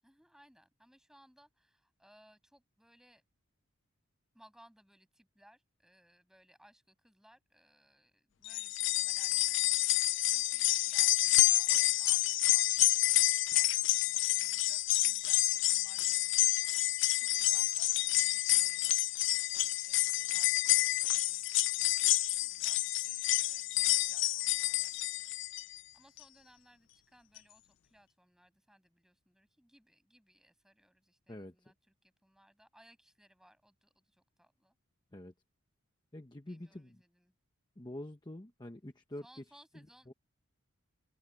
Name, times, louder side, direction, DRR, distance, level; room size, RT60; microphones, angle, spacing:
voice 1, 0.0-3.2 4.3-25.4 25.6-34.8 36.5-37.3 39.2-40.1, equal, ahead, 7.1 m, -65 dB
sound 1, 8.5-25.8 26.2-26.3 27.4-27.5, left 17 dB, 55° left, 0.4 m, -29 dB
voice 2, 31.3-31.7 35.1-35.3 36.1-37.0 37.8-39.4 39.7-40.1, left 1 dB, 20° left, 1.0 m, -46 dB
open air
head